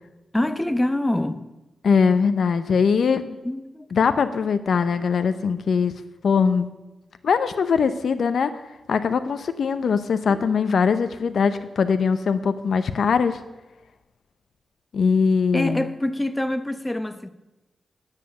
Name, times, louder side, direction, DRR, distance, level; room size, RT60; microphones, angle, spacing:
voice 1, 0.3-1.5 3.4-3.9 10.3-10.5 15.5-17.3, left 1 dB, 15° left, 0.9 m, -25 dB
voice 2, 1.8-3.4 3.9-5.9 6.2-6.7 7.2-8.5 8.9-13.4 14.9-15.8, left 5 dB, 75° left, 0.6 m, -21 dB
9.9 x 7.4 x 8.8 m
cardioid pair, 80°, 0 cm